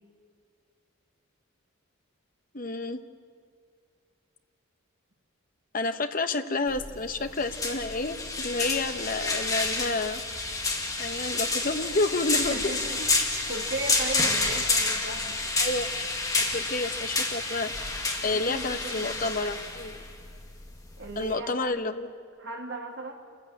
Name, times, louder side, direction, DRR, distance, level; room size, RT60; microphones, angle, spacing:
voice 1, 2.5-3.0 5.7-10.2 11.0-12.7 15.6-15.9 16.3-20.0 21.2-22.1, left 2 dB, 40° left, 9 dB, 1.0 m, -30 dB
sound 1, 6.7-21.3, left 3 dB, 15° left, 1.9 m, -29 dB
voice 2, 12.5-15.4 15.8-15.9 18.2-19.3 21.0-21.8 22.4-23.1, right 2 dB, 55° right, 2 dB, 2.7 m, -37 dB
27.5 x 14.5 x 9.0 m, 2.2 s
head